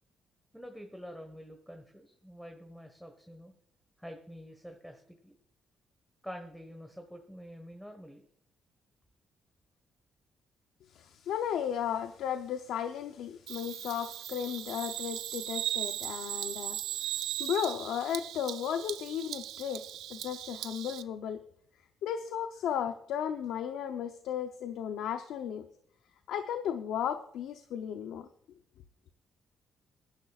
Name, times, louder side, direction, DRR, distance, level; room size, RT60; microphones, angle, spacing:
voice 1, 0.5-3.5 4.0-5.3 6.2-8.3, equal, ahead, 4 dB, 1.4 m, -47 dB
voice 2, 10.9-16.8 17.4-19.8 20.1-21.4 22.0-25.7 26.3-28.3, left 9 dB, 80° left, 7 dB, 0.7 m, -35 dB
Bird vocalization bird call bird song, 13.5-21.0, right 12 dB, 85° right, 0.6 m, -38 dB
21.5 x 10.5 x 2.4 m, 0.67 s
cardioid pair, 90°, 0 cm